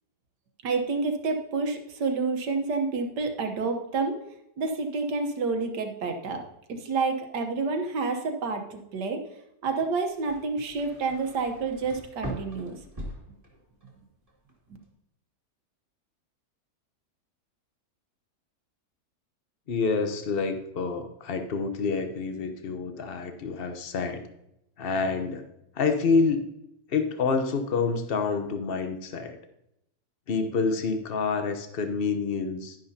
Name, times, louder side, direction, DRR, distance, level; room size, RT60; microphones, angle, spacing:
voice 1, 0.6-4.2 4.6-6.4 6.7-9.2 9.6-12.8, right 4 dB, 85° right, 5 dB, 1.7 m, -29 dB
sound 1, 9.8-13.9 14.3-14.8, equal, 20° right, 1.7 m, -42 dB
voice 2, 19.7-24.2 24.8-25.4 25.7-26.5 26.9-29.4 30.3-32.8, left 4 dB, 45° left, 7 dB, 0.9 m, -27 dB
11.0 x 10.5 x 2.8 m, 0.82 s
omnidirectional pair, 1.8 m